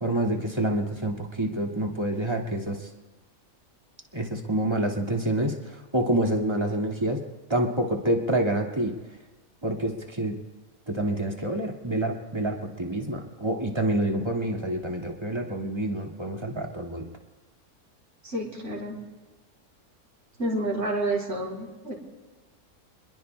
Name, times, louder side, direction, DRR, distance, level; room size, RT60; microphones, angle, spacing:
voice 1, 0.0-2.8 4.1-7.2 7.5-9.0 9.6-10.4 10.9-17.1, right 1 dB, 20° right, 0 dB, 1.9 m, -27 dB
voice 2, 18.2-19.0 20.4-21.9, right 1 dB, 50° right, -3 dB, 3.8 m, -29 dB
30.0 x 22.0 x 2.2 m, 1.3 s
omnidirectional pair, 1.6 m